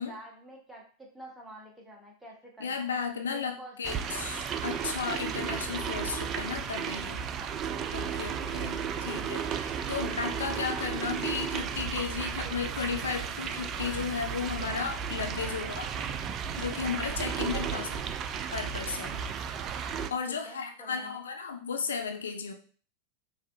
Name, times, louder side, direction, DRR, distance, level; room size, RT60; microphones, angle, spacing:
voice 1, 0.0-2.9 3.3-4.3 7.3-7.5 10.0-10.4 15.3-15.6 17.5-18.1 20.3-21.2, right 1 dB, 5° right, -2 dB, 1.1 m, -48 dB
voice 2, 2.6-7.2 7.9-15.9 16.6-17.9 18.5-19.2 20.1-22.5, left 5 dB, 70° left, 5 dB, 0.5 m, -34 dB
sound 1, 3.8-20.1, right 7 dB, 30° right, 0.3 m, -34 dB
4.6 x 2.8 x 2.5 m, 0.41 s
figure-of-eight pair, 90°, 0 cm